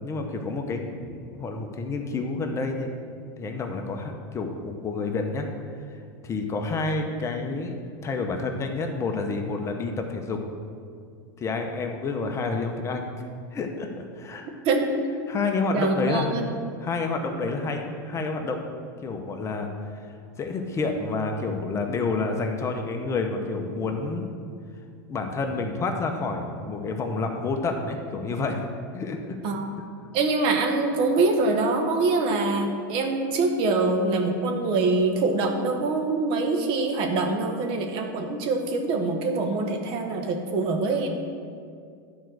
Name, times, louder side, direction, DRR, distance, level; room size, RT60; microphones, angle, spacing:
voice 1, 0.0-2.9 3.3-5.5 6.2-7.8 8.0-10.4 11.4-13.2 13.5-14.5 15.3-16.4 16.8-18.6 19.0-24.3 25.1-28.7 28.9-29.4, left 3 dB, 25° left, 4 dB, 0.9 m, -29 dB
voice 2, 15.7-16.4 29.4-29.7 30.1-41.1, right 3 dB, 50° right, 4 dB, 1.2 m, -24 dB
10.0 x 4.7 x 6.3 m, 2.3 s
supercardioid pair, 120°, 11 cm